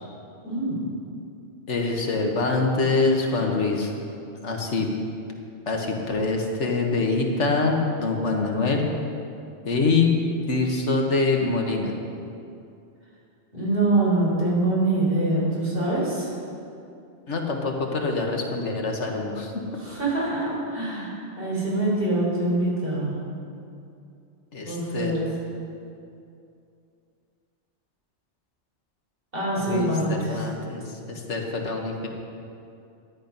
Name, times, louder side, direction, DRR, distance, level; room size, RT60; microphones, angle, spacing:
voice 1, 0.4-0.8 13.5-16.3 19.8-23.2 24.6-25.2 29.3-30.4, right 2 dB, 50° right, -6 dB, 4.2 m, -24 dB
voice 2, 1.7-3.9 4.4-4.9 5.7-8.9 9.6-10.1 10.5-11.9 17.3-19.6 24.5-25.1 29.6-32.1, left 3 dB, 85° left, 1 dB, 1.7 m, -25 dB
12.5 x 10.5 x 5.4 m, 2.5 s
omnidirectional pair, 1.2 m